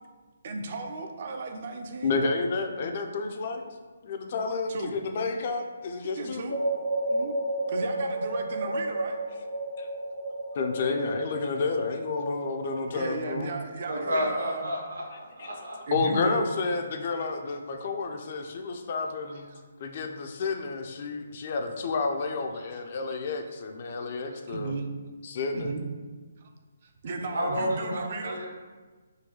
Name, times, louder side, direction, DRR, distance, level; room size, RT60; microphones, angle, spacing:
voice 1, 0.4-2.2 4.7-4.9 6.2-6.5 7.1-7.3 7.7-9.2 12.9-14.8 15.9-16.6 19.3-19.6 22.6-22.8 23.9-24.0 24.3-24.9 25.5-25.9 26.8-28.4, right 3 dB, 45° right, 4 dB, 0.4 m, -35 dB
voice 2, 2.0-3.7 4.0-6.4 9.8-9.9 10.6-13.5 15.4-15.5 15.9-19.5 19.8-24.7 25.2-25.7, left 4 dB, 45° left, 5 dB, 0.3 m, -30 dB
sound 1, 6.5-12.9, right 1 dB, 90° left, 1.0 m, -32 dB
voice 3, 13.9-15.8 27.2-28.5, equal, 80° right, -2 dB, 0.9 m, -31 dB
3.7 x 2.2 x 2.9 m, 1.4 s
figure-of-eight pair, 145°, 0 cm